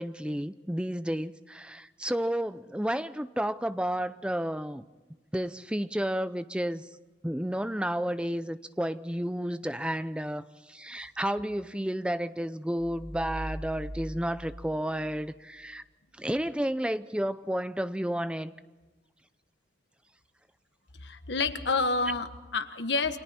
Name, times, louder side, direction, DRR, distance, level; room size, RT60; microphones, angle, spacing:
voice 1, 0.0-4.8 5.3-6.9 7.2-10.4 10.7-15.8 16.2-18.5, equal, 5° right, 12 dB, 0.6 m, -31 dB
sound 1, 12.8-15.6, right 1 dB, 20° left, 7.0 m, -41 dB
voice 2, 21.0-23.2, left 3 dB, 85° left, 9 dB, 1.5 m, -29 dB
29.5 x 25.0 x 4.3 m, 1.3 s
head